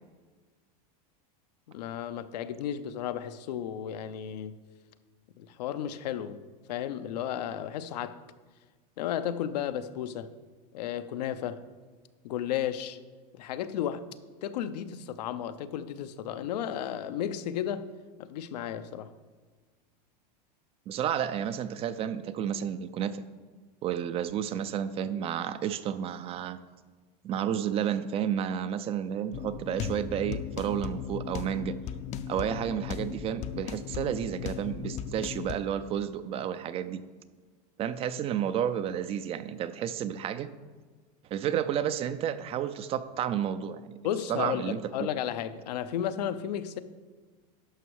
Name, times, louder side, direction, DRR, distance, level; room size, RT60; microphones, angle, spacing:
voice 1, 1.7-4.6 5.4-6.4 6.7-8.2 9.0-10.3 10.7-11.6 12.2-13.0 13.3-14.0 14.4-17.9 18.2-19.1 44.0-46.8, left 10 dB, 85° left, 0.7 m, -33 dB
voice 2, 20.9-23.2 23.8-26.6 27.2-31.8 32.3-37.0 37.8-40.5 41.3-44.0 44.3-45.1, right 9 dB, 30° right, 0.4 m, -31 dB
sound 1, 29.3-35.6, left 8 dB, 35° left, 0.5 m, -37 dB
11.5 x 6.1 x 4.7 m
supercardioid pair, 135°, 20 cm